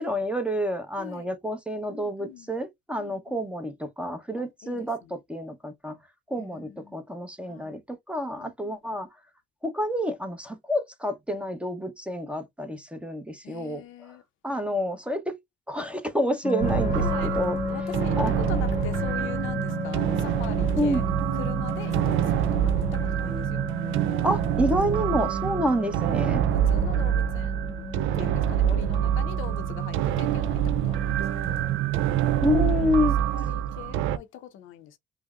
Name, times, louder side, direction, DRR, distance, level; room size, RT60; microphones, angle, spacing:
voice 1, 0.0-5.9 6.3-9.1 9.6-13.8 14.4-15.4 15.7-17.6 18.2-18.3 20.8-21.0 24.2-26.4 32.4-33.1, equal, 5° right, 0.8 m, -28 dB
voice 2, 1.0-1.3 1.9-2.5 3.0-3.5 4.4-5.2 6.4-7.0 7.5-7.8 8.4-9.1 13.4-14.2 14.5-14.6 16.9-21.0 21.3-23.7 25.7-31.7 32.9-35.0, left 10 dB, 85° left, 0.6 m, -42 dB
sound 1, 16.4-31.7, left 4 dB, 35° left, 0.7 m, -35 dB
sound 2, 16.6-34.2, right 10 dB, 85° right, 0.4 m, -26 dB
5.4 x 2.1 x 2.4 m
cardioid pair, 90°, 20 cm